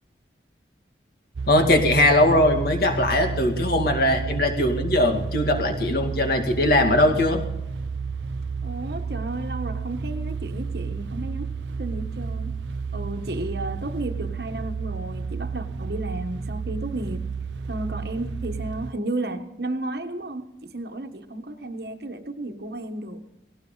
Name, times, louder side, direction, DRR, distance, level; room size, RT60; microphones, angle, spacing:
sound 1, 1.4-18.9, right 5 dB, 75° right, 0.5 m, -31 dB
voice 1, 1.5-7.4, left 1 dB, 55° left, 2.3 m, -20 dB
voice 2, 8.6-11.5 11.8-12.5 12.9-17.3 17.7-23.2, right 1 dB, 60° right, 1.4 m, -33 dB
19.0 x 17.0 x 4.0 m
head